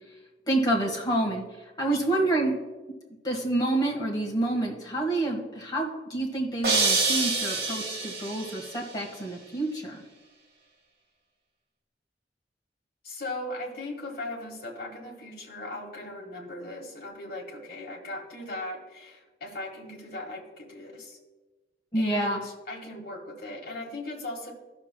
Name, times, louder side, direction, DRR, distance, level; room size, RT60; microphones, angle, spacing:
voice 1, 0.5-1.4 1.8-2.6 3.2-10.0 21.9-22.4, right 2 dB, 25° left, -2 dB, 1.5 m, -28 dB
voice 2, 1.8-2.3 13.0-21.2 21.9-24.5, left 2 dB, 55° left, -1 dB, 1.7 m, -38 dB
sound 1, 6.6-8.7, right 3 dB, 60° right, 1.6 m, -26 dB
15.0 x 6.1 x 2.2 m, 1.2 s
head